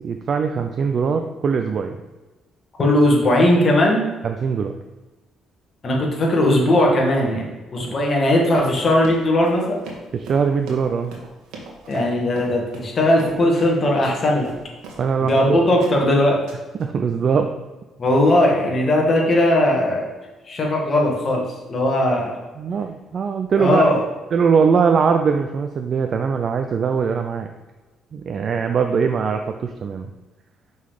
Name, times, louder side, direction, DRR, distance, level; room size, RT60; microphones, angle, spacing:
voice 1, 0.0-2.0 4.2-4.7 7.8-7.9 10.1-11.2 15.0-15.7 16.8-17.5 22.6-23.8 24.3-27.5 28.1-30.1, right 6 dB, 55° right, 6 dB, 0.5 m, -21 dB
voice 2, 2.8-4.1 5.8-9.8 11.9-14.5 15.2-16.4 18.0-20.1 20.5-21.4 21.7-22.4 23.6-24.0, left 1 dB, 40° left, -1 dB, 1.9 m, -18 dB
Run, 8.5-15.5 15.8-16.1 16.5-16.8, right 3 dB, 85° right, 1.4 m, -39 dB
5.5 x 4.0 x 4.9 m, 1.2 s
supercardioid pair, 75°, 0 cm